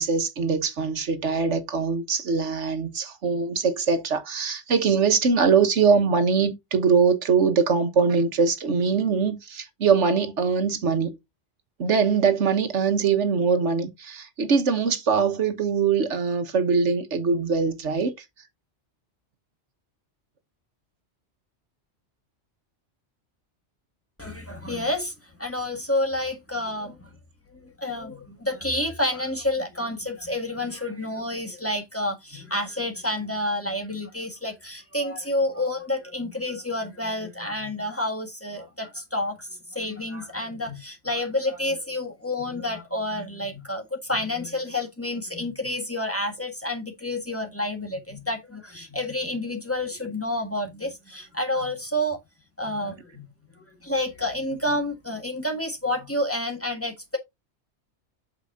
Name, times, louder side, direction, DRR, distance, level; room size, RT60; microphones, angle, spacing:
voice 1, 0.0-11.2 11.8-18.1, right 5 dB, 85° right, 1.5 m, -22 dB
voice 2, 24.2-25.1 25.4-27.1 27.6-52.2 52.6-53.2 53.8-57.2, left 1 dB, 10° left, 1.7 m, -29 dB
8.3 x 6.6 x 2.7 m
omnidirectional pair, 1.2 m